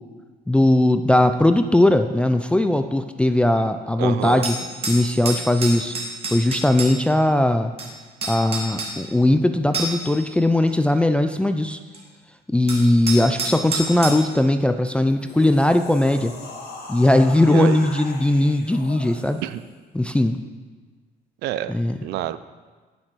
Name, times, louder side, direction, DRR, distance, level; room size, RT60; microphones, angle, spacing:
voice 1, 0.5-4.6 4.9-5.9 6.3-7.7 8.2-11.8 12.5-16.3 16.9-19.4 19.9-20.4 21.7-22.0, left 1 dB, 5° left, 8 dB, 0.4 m, -19 dB
voice 2, 4.0-4.5 17.4-17.8 19.4-19.6 21.4-21.7 22.0-22.4, right 13 dB, 80° right, 14 dB, 0.5 m, -27 dB
sound 1, 4.2-6.9 7.8-7.9 8.2-8.9 9.7-10.1 10.7-10.8 11.9-12.0 12.7-14.2, right 2 dB, 35° right, 2.0 m, -28 dB
sound 2, 15.1-19.7, left 3 dB, 70° left, 1.9 m, -39 dB
9.1 x 7.3 x 4.7 m, 1.4 s
cardioid pair, 110°, 17 cm